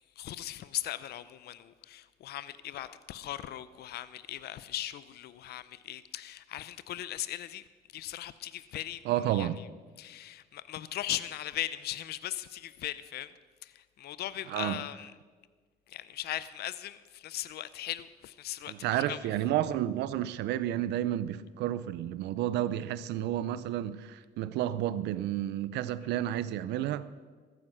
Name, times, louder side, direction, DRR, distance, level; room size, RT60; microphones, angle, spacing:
voice 1, 0.2-7.6 7.9-9.7 10.0-13.3 13.6-13.7 14.0-15.1 15.9-19.4, left 13 dB, 70° left, 0.6 m, -39 dB
voice 2, 9.0-9.6 14.5-14.8 18.7-27.1, right 12 dB, 85° right, 0.6 m, -31 dB
14.0 x 9.6 x 6.1 m
cardioid pair, 90°, 17 cm